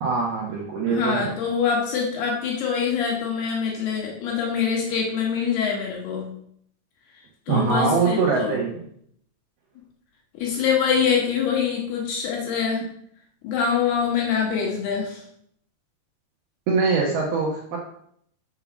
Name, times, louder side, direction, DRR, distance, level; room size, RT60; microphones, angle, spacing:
voice 1, 0.0-1.3 7.5-8.8 12.7-12.9 16.7-17.8, right 4 dB, 70° right, -2 dB, 2.4 m, -23 dB
voice 2, 0.9-6.3 7.5-8.6 10.3-12.8 13.4-15.2, left 6 dB, 65° left, -1 dB, 2.9 m, -24 dB
7.0 x 5.5 x 6.1 m, 0.68 s
omnidirectional pair, 5.6 m